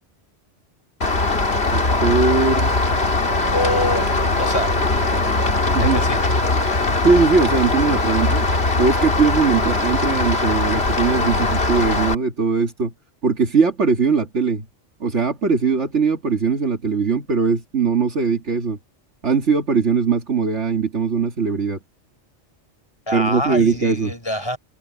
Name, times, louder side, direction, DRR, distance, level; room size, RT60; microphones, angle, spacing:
Rain, 1.0-12.1, left 2 dB, 60° left, 2.8 m, -20 dB
voice 1, 1.7-2.9 5.7-6.0 7.0-8.5 8.8-12.9 13.2-14.7 15.0-18.8 19.2-21.8 23.1-24.1, right 5 dB, 75° right, 2.3 m, -20 dB
voice 2, 3.5-4.1 4.4-4.7 5.8-6.3 23.1-24.6, left 1 dB, 20° left, 5.7 m, -25 dB
omnidirectional pair, 1.2 m